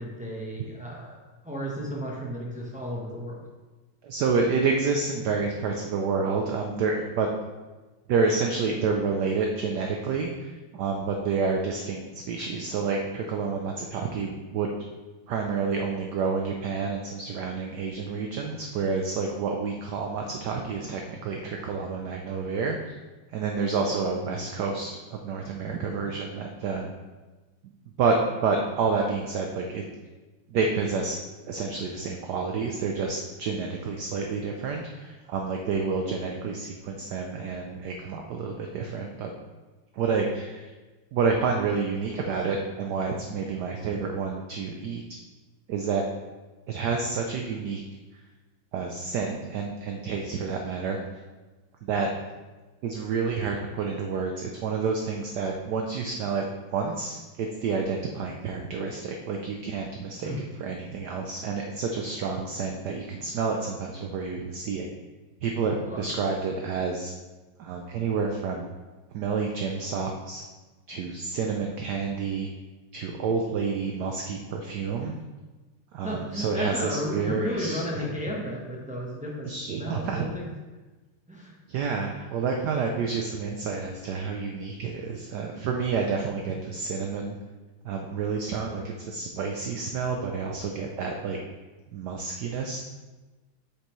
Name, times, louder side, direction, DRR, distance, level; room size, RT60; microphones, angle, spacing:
voice 1, 0.0-3.4 60.2-60.4 65.8-66.0 76.0-80.5 81.3-81.5, equal, 10° right, -4 dB, 0.5 m, -33 dB
voice 2, 4.0-7.3 8.1-14.7 15.3-22.9 23.3-26.9 28.0-29.8 30.5-31.2 31.5-39.3 39.9-40.7 41.1-45.0 45.7-46.0 46.7-47.8 48.7-51.0 51.8-52.1 52.8-60.3 60.6-64.9 65.4-67.1 67.6-68.7 69.1-70.4 70.9-72.5 72.9-75.2 75.9-78.1 79.5-80.3 81.7-87.4 87.8-91.4 91.9-92.8, right 4 dB, 70° right, 2 dB, 1.0 m, -29 dB
8.0 x 6.7 x 3.1 m, 1.2 s
omnidirectional pair, 2.4 m